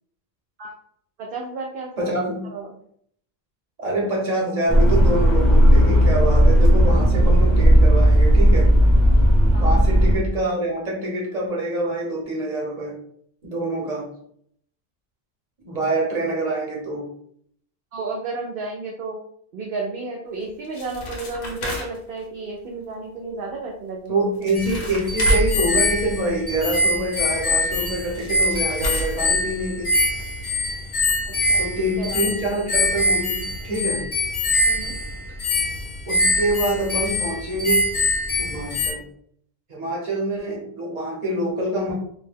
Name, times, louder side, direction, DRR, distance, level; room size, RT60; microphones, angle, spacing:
voice 1, 1.2-2.1 2.5-2.7 9.5-9.8 17.9-19.2 19.5-24.2 31.5-31.6 32.0-32.3 34.6-34.9, right 3 dB, 65° right, -1 dB, 0.7 m, -32 dB
voice 2, 2.0-2.4 3.8-8.7 9.6-13.0 13.4-14.1 15.6-17.1 24.1-29.9 31.6-34.0 36.1-37.9 38.4-39.0 39.7-41.9, right 1 dB, 40° right, -3 dB, 1.0 m, -25 dB
sound 1, 4.7-10.2, equal, ahead, 0.6 m, -15 dB
sound 2, 20.4-22.2 24.1-24.2 24.4-26.6 27.8-27.9 28.1-29.9 30.2-30.3 30.5-30.6 31.1-31.2 31.5-31.6, right 1 dB, 90° left, 1.0 m, -29 dB
sound 3, 24.5-38.9, left 2 dB, 55° left, 1.1 m, -23 dB
2.6 x 2.1 x 3.3 m, 0.65 s
omnidirectional pair, 1.1 m